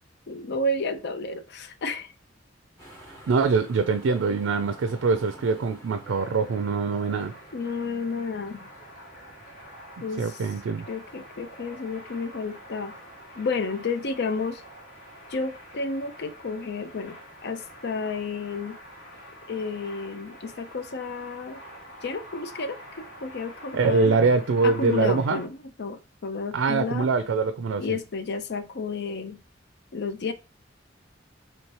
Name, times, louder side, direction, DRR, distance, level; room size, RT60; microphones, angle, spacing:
voice 1, 0.3-2.1 7.5-8.7 10.0-10.4 10.9-12.9 13.4-14.6 15.3-17.2 17.4-18.8 19.5-21.6 22.0-24.2 24.6-27.1 27.8-29.4 29.9-30.3, left 3 dB, 60° left, 0.5 m, -31 dB
sound 1, 2.8-11.2, right 1 dB, 15° left, 1.6 m, -51 dB
voice 2, 3.3-7.3 10.2-10.9 23.7-25.4 26.5-28.0, right 4 dB, 85° right, 0.4 m, -24 dB
sound 2, 6.0-25.5, equal, 80° left, 2.0 m, -46 dB
3.1 x 3.1 x 4.2 m
head